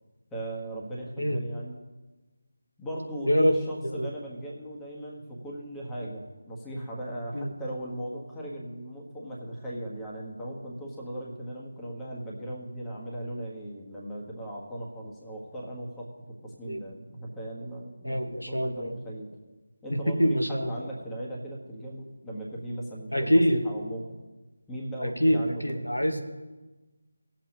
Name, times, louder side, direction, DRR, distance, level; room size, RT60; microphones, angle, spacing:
voice 1, 0.3-1.8 2.8-16.1 16.4-19.3 19.8-24.1 24.7-25.9, right 1 dB, 5° left, -4 dB, 1.4 m, -38 dB
voice 2, 18.0-19.0 19.9-20.8 23.1-23.6 25.0-26.2, equal, 90° left, 4 dB, 1.5 m, -25 dB
18.5 x 7.4 x 3.0 m, 1.2 s
figure-of-eight pair, 160°, 0 cm